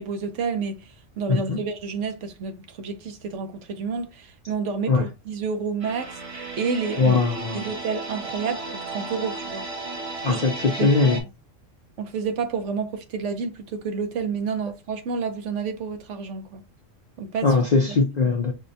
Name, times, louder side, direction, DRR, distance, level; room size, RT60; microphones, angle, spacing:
voice 1, 0.0-7.2 7.5-9.7 10.2-10.5 10.8-11.3 12.0-16.6 17.2-17.5 17.9-18.0, right 5 dB, 70° right, 1.0 m, -30 dB
voice 2, 1.3-1.6 4.9-5.0 7.0-7.7 10.2-11.2 17.4-18.5, left 3 dB, 55° left, 0.5 m, -20 dB
sound 1, 5.8-11.2, right 3 dB, 30° right, 0.8 m, -34 dB
5.5 x 2.2 x 2.6 m
omnidirectional pair, 1.4 m